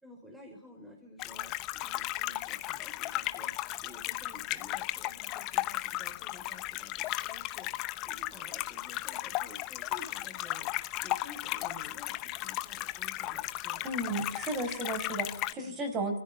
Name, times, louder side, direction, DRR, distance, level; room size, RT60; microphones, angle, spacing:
voice 1, 0.0-3.5 3.8-6.9 7.2-7.7 8.1-10.7 11.0-13.9 15.5-15.8, left 1 dB, 5° right, 2 dB, 4.1 m, -52 dB
sound 1, 1.2-15.5, left 17 dB, 30° left, 0.9 m, -35 dB
voice 2, 13.8-16.2, right 2 dB, 25° right, 8 dB, 5.1 m, -34 dB
28.0 x 14.5 x 7.1 m, 0.72 s
hypercardioid pair, 125°, 0 cm